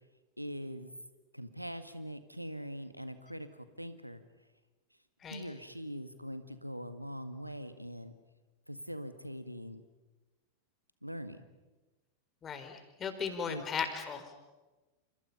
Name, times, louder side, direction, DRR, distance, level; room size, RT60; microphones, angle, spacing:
voice 1, 0.4-0.9 1.3-4.2 5.3-8.1 8.7-9.8 11.0-11.4 13.4-13.6, equal, 90° right, 10 dB, 1.8 m, -42 dB
voice 2, 12.4-14.2, left 6 dB, 25° left, 7 dB, 4.3 m, -37 dB
29.0 x 28.0 x 5.6 m, 1.2 s
figure-of-eight pair, 90°, 0 cm